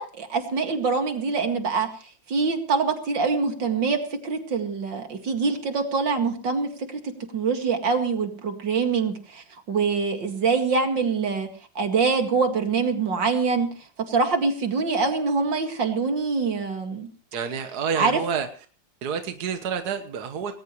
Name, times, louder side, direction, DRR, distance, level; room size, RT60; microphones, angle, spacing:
voice 1, 0.0-1.9 2.3-11.5 11.8-13.7 14.1-17.1 18.0-18.2, right 4 dB, 80° right, 5 dB, 2.8 m, -24 dB
voice 2, 17.3-18.5 19.0-20.5, right 6 dB, 60° right, 7 dB, 1.7 m, -28 dB
20.0 x 18.0 x 3.2 m, 0.38 s
omnidirectional pair, 2.0 m